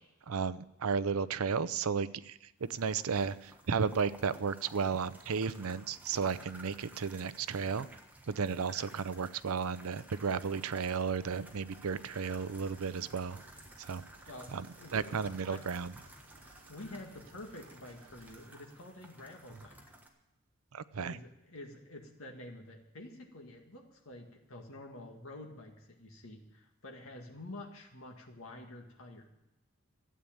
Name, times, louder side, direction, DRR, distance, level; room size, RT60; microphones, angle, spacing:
voice 1, 0.3-7.9 8.3-13.4 13.8-14.0 14.5-14.7 14.9-15.9 20.7-21.2, right 5 dB, 90° right, 16 dB, 0.6 m, -34 dB
sound 1, 2.6-20.1, right 1 dB, 10° right, 1.4 m, -55 dB
sound 2, 11.0-18.5, right 2 dB, 70° right, 1.8 m, -61 dB
voice 2, 14.3-15.7 16.4-19.8 21.0-29.3, left 1 dB, 75° left, 1 dB, 1.9 m, -49 dB
13.0 x 8.7 x 8.7 m, 0.93 s
head